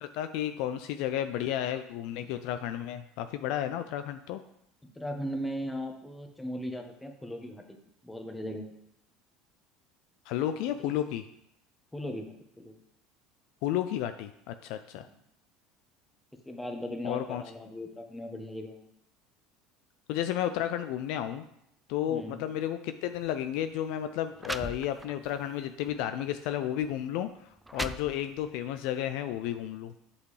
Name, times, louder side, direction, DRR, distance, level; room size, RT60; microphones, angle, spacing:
voice 1, 0.0-4.4 10.3-11.2 13.6-15.1 17.0-17.4 20.1-21.4 21.9-27.3 27.7-29.9, left 11 dB, 65° left, 9 dB, 0.4 m, -32 dB
voice 2, 4.8-7.8 8.0-8.7 10.8-10.9 11.9-12.7 15.0-15.1 16.5-18.9 22.1-22.4, equal, 10° left, 4 dB, 1.2 m, -38 dB
sound 1, 23.1-23.3 24.1-24.2 24.4-25.3 25.9-26.0 26.8-26.9 27.4-28.6, right 1 dB, 10° right, 0.4 m, -38 dB
7.9 x 5.4 x 3.3 m, 0.76 s
hypercardioid pair, 70°, 0 cm